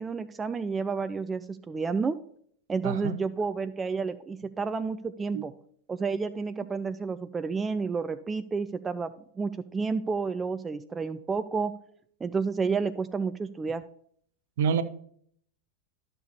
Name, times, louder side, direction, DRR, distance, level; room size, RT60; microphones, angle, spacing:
voice 1, 0.0-2.2 2.7-5.5 5.9-11.7 12.2-13.8, right 4 dB, 15° right, 0.3 m, -30 dB
voice 2, 2.8-3.2 5.3-5.4 14.6-14.8, right 7 dB, 55° right, 0.7 m, -27 dB
12.5 x 6.6 x 2.7 m
figure-of-eight pair, 90°, 0 cm